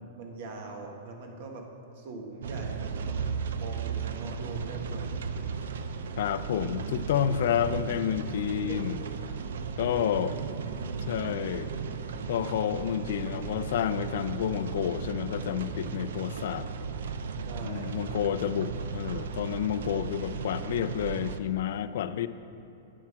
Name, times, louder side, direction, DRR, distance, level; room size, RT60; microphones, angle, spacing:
voice 1, 0.0-1.6 1.9-3.2 3.6-5.6 8.7-8.8 9.8-10.3 17.4-18.3, right 3 dB, 55° right, 2 dB, 1.5 m, -42 dB
sound 1, 2.4-21.4, right 5 dB, 80° right, 0.6 m, -35 dB
voice 2, 6.2-9.0 9.8-10.3 11.1-11.7 12.3-16.7 17.6-22.3, left 10 dB, 65° left, 12 dB, 0.4 m, -30 dB
9.8 x 7.4 x 6.1 m, 2.9 s
supercardioid pair, 160°, 0 cm